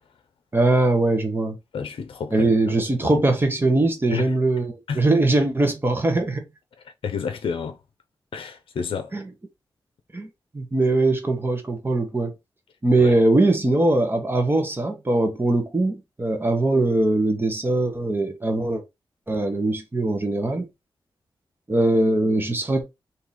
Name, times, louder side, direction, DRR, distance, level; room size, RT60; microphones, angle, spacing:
voice 1, 0.5-1.6 2.3-6.5 9.1-9.3 10.1-10.3 10.5-12.3 12.8-18.8 19.3-20.7 21.7-22.8, right 2 dB, 25° right, 1.2 m, -21 dB
voice 2, 1.7-2.5 3.0-3.2 4.1-4.3 4.9-5.0 6.8-7.8 8.3-9.1 13.0-13.1, left 6 dB, 80° left, 0.6 m, -30 dB
3.1 x 2.8 x 3.9 m
cardioid pair, 80°, 9 cm